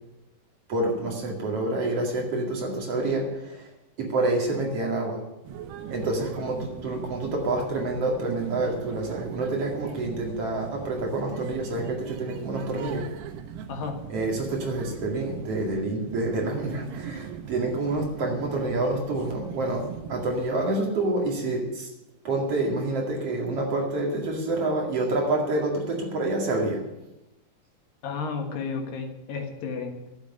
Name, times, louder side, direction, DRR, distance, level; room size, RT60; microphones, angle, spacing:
voice 1, 0.7-3.7 4.0-5.2 5.9-13.1 14.1-21.9 22.2-26.8, right 2 dB, 45° right, 1 dB, 2.8 m, -28 dB
sound 1, 5.4-20.4, right 7 dB, 90° right, 3.0 m, -40 dB
voice 2, 13.7-14.0 28.0-29.9, left 5 dB, 70° left, 4 dB, 3.2 m, -32 dB
12.0 x 8.4 x 9.5 m, 0.92 s
omnidirectional pair, 4.4 m